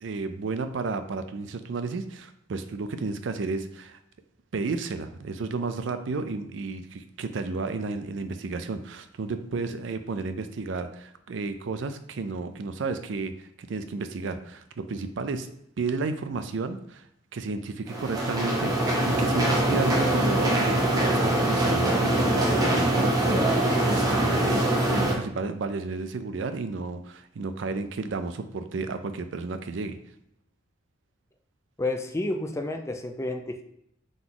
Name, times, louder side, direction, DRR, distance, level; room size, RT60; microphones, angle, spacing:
voice 1, 0.0-4.0 4.5-15.5 15.8-17.1 17.3-24.6 24.9-30.0, right 4 dB, 70° right, 9 dB, 0.4 m, -32 dB
sound 1, 17.9-25.1, right 1 dB, 20° right, 0.8 m, -23 dB
voice 2, 31.8-33.6, left 2 dB, 15° left, 6 dB, 0.3 m, -30 dB
3.9 x 2.9 x 3.8 m, 0.76 s
head